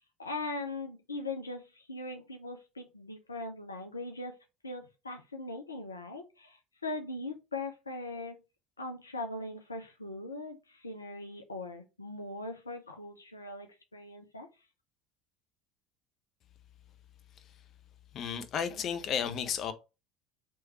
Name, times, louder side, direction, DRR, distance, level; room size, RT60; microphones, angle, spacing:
voice 1, 0.2-4.3 4.6-8.4 8.8-14.5, left 2 dB, 85° left, 0.5 m, -40 dB
voice 2, 18.1-19.7, left 7 dB, 45° left, 0.6 m, -33 dB
3.1 x 3.0 x 4.6 m
figure-of-eight pair, 65°, 0 cm